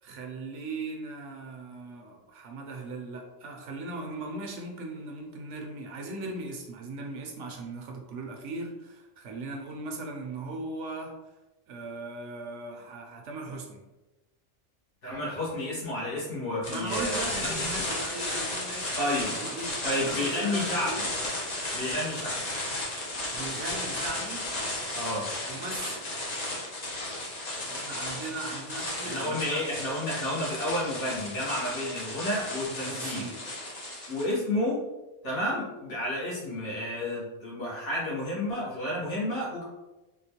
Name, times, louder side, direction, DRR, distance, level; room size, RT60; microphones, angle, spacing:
voice 1, 0.0-11.1 11.7-13.8 16.6-21.1 23.3-24.4 25.5-26.1 27.7-29.6 32.7-33.4, right 2 dB, 75° right, 2 dB, 0.9 m, -38 dB
voice 2, 15.0-17.8 19.0-19.3 19.8-21.0 21.7-22.4 24.9-25.3 29.0-33.3 34.1-34.8 35.2-39.6, left 1 dB, 70° left, -7 dB, 1.5 m, -31 dB
sound 1, 16.6-34.3, left 1 dB, 40° left, 0.7 m, -34 dB
3.6 x 2.3 x 2.8 m, 1.1 s
omnidirectional pair, 1.3 m